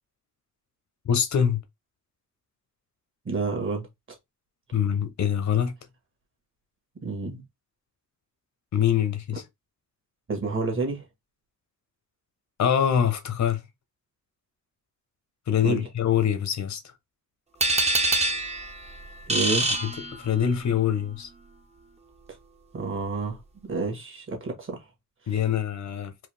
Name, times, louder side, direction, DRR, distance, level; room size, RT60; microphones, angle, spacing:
voice 1, 1.0-1.6 4.7-5.7 8.7-9.4 12.6-13.6 15.5-16.8 19.8-19.9 20.2-21.3 25.3-26.1, left 8 dB, 70° left, 1.0 m, -24 dB
voice 2, 3.2-3.9 7.0-7.4 10.3-11.0 15.6-15.9 19.3-19.7 22.7-24.8, right 3 dB, 40° right, 1.7 m, -29 dB
sound 1, 17.6-20.6, right 2 dB, 20° right, 0.9 m, -26 dB
4.8 x 2.9 x 3.4 m
wide cardioid pair, 145°, 30 cm